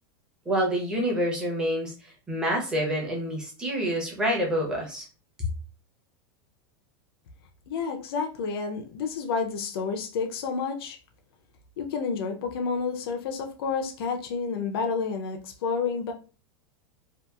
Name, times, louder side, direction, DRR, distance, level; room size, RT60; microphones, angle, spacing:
voice 1, 0.5-5.0, equal, 5° right, -2 dB, 0.7 m, -27 dB
voice 2, 7.7-11.0 11.8-16.1, left 5 dB, 80° left, 4 dB, 0.5 m, -30 dB
2.7 x 2.4 x 2.3 m, 0.35 s
supercardioid pair, 170°, 13 cm